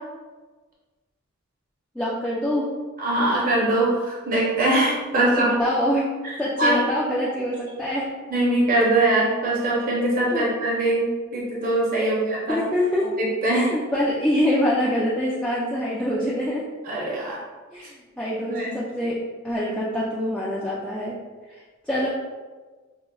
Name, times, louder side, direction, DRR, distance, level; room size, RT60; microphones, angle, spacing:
voice 1, 2.0-2.7 5.4-6.1 6.4-8.1 10.3-10.5 12.0-12.2 12.5-13.1 13.5-16.6 17.7-19.2 19.4-21.2 21.5-22.1, left 1 dB, 5° left, -7 dB, 0.3 m, -25 dB
voice 2, 3.0-5.5 6.2-6.8 8.3-12.6 13.2-13.7 16.8-17.4 18.4-18.8, right 1 dB, 45° right, -4 dB, 0.7 m, -22 dB
5.1 x 2.0 x 2.3 m, 1.3 s
head